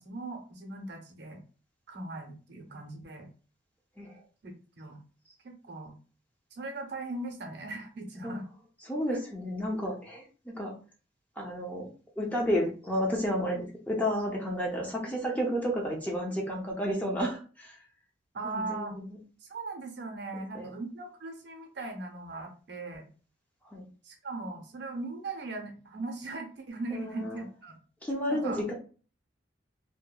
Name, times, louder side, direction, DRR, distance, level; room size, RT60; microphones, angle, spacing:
voice 1, 0.0-1.4 1.9-3.3 4.4-5.0 5.4-5.9 6.5-8.4 9.1-9.2 18.3-18.9 19.4-23.1 24.0-27.8 28.3-28.6, right 3 dB, 60° right, 3 dB, 0.6 m, -39 dB
voice 2, 8.8-10.7 11.4-11.9 12.2-17.8 18.4-19.2 20.5-20.7 23.6-23.8 26.9-27.5 28.0-28.7, equal, 10° left, -2 dB, 0.5 m, -31 dB
2.7 x 2.1 x 2.2 m, 0.38 s
head